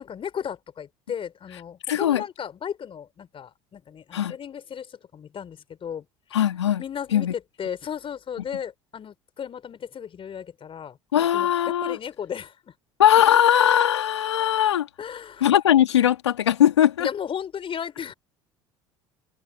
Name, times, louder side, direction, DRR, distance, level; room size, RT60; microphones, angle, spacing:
voice 1, 0.0-6.0 6.8-7.3 7.6-12.5 15.0-15.5 17.0-18.1, left 8 dB, 40° left, 4.1 m, -35 dB
voice 2, 1.9-2.2 4.1-4.4 6.3-6.8 7.1-7.3 11.1-12.0 13.0-14.9 15.4-17.1, left 10 dB, 85° left, 2.4 m, -20 dB
hypercardioid pair, 70°, 14 cm